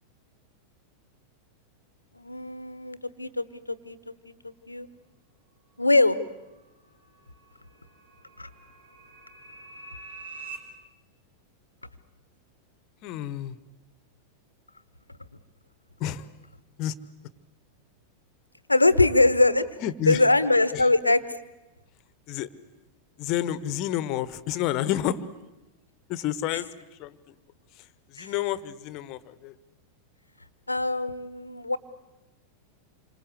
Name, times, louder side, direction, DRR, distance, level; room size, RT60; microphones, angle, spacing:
voice 1, 2.1-4.9 5.8-6.2 8.4-8.5 18.7-19.6 20.1-21.2 28.2-28.3 30.7-31.8, left 2 dB, 85° left, 16 dB, 1.1 m, -23 dB
sound 1, 6.4-10.6, right 4 dB, 75° right, 4.6 m, -46 dB
voice 2, 13.0-13.6 16.0-16.3 16.8-16.9 19.8-20.2 20.7-20.8 22.3-22.5 23.2-25.2 26.1-26.7 27.0-27.3 28.1-29.5, left 12 dB, 40° left, 17 dB, 1.2 m, -29 dB
28.0 x 25.0 x 8.2 m, 1.0 s
figure-of-eight pair, 90°, 0 cm